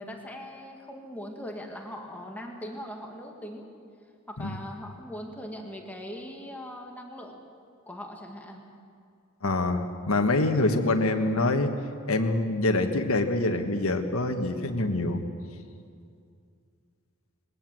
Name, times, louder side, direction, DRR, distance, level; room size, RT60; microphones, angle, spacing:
voice 1, 0.0-3.7 4.3-7.4 7.9-8.6, equal, 10° left, 1 dB, 2.0 m, -40 dB
voice 2, 9.4-11.7 12.1-15.2, left 2 dB, 80° left, 5 dB, 1.5 m, -25 dB
20.5 x 18.5 x 7.7 m, 2.4 s
head